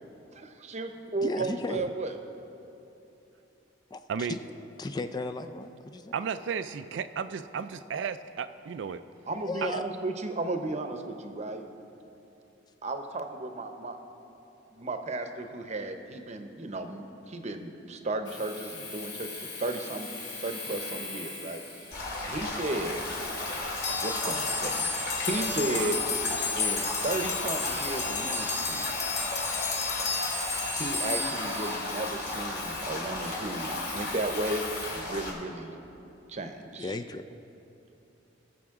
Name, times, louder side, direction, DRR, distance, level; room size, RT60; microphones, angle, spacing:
voice 1, 0.7-2.1 9.3-11.6 12.8-14.0 14.7-20.1 20.4-21.6 22.3-23.0 24.0-26.0 26.6-28.9 30.8-34.6 34.9-35.7 36.3-36.9, right 2 dB, 40° right, 6 dB, 0.8 m, -34 dB
voice 2, 1.2-1.9 3.9-4.4 4.8-6.1 9.4-9.8 36.8-37.2, left 3 dB, 20° left, 9 dB, 0.3 m, -35 dB
voice 3, 6.1-9.0 9.6-9.7, right 6 dB, 75° right, 10 dB, 0.4 m, -33 dB
Domestic sounds home sounds, 18.2-35.1, left 4 dB, 75° left, 2.2 m, -42 dB
sound 1, 21.9-35.3, left 2 dB, 60° left, 2.6 m, -35 dB
sound 2, 23.8-32.3, left 4 dB, 40° left, 1.2 m, -32 dB
20.5 x 7.0 x 3.7 m, 2.8 s
head